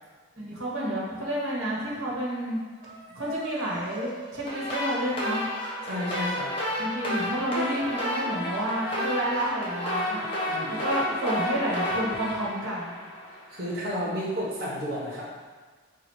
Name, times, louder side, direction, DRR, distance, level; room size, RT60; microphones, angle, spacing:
voice 1, 0.3-2.6 3.1-5.4 6.8-10.3 10.7-12.9, right 1 dB, 85° right, -6 dB, 1.4 m, -30 dB
sound 1, 2.7-11.2, equal, 25° right, 0.5 m, -44 dB
sound 2, 4.5-13.6, left 1 dB, 25° left, 0.8 m, -31 dB
voice 2, 5.8-6.5 10.5-10.8 13.3-15.2, equal, 45° right, -6 dB, 1.2 m, -32 dB
4.0 x 2.7 x 4.8 m, 1.4 s
head